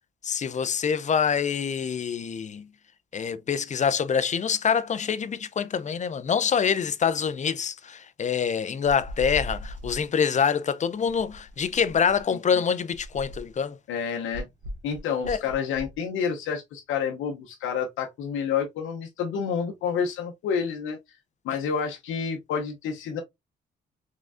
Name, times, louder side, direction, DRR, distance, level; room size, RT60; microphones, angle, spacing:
voice 1, 0.2-2.7 3.1-13.8 15.3-15.4, left 7 dB, 40° left, 0.5 m, -25 dB
sound 1, 8.8-10.1 11.0-12.3 12.9-13.6 14.3-16.0, equal, 65° right, 1.0 m, -38 dB
voice 2, 13.9-14.5 14.8-21.0 21.4-23.2, left 6 dB, 85° left, 0.7 m, -29 dB
3.7 x 3.1 x 2.5 m
cardioid pair, 70°, 20 cm